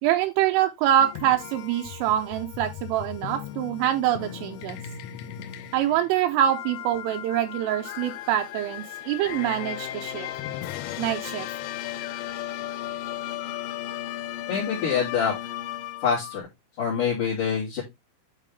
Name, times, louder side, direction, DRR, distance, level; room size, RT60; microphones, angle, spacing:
voice 1, 0.0-4.8 5.7-10.3 11.0-11.5, right 11 dB, 85° right, 3.2 m, -25 dB
sound 1, 1.0-16.4, left 12 dB, 80° left, 3.1 m, -36 dB
voice 2, 14.5-15.3 16.0-16.4 16.8-17.8, left 7 dB, 45° left, 4.1 m, -25 dB
9.9 x 4.4 x 3.4 m
omnidirectional pair, 5.9 m